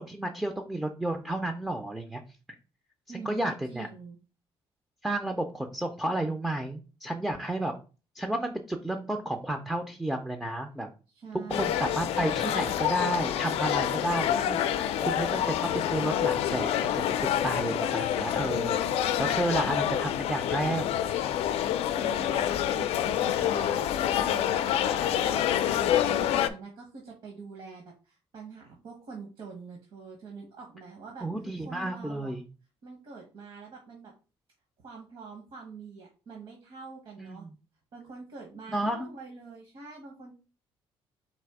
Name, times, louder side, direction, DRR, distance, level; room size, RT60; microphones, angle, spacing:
voice 1, 0.0-2.2 3.1-3.9 5.0-7.8 8.2-10.9 11.5-18.8 19.2-20.9 31.2-32.4 37.2-37.5 38.7-39.1, right 1 dB, 5° right, 5 dB, 0.3 m, -31 dB
voice 2, 3.1-4.2 11.1-11.8 21.9-24.5 24.9-31.3 31.6-32.3 32.8-34.1 34.8-37.4 37.9-40.3, right 4 dB, 60° right, 0 dB, 1.0 m, -45 dB
sound 1, 11.5-26.5, left 10 dB, 85° left, 0.4 m, -27 dB
4.1 x 2.6 x 4.7 m, 0.34 s
cardioid pair, 170°, 10 cm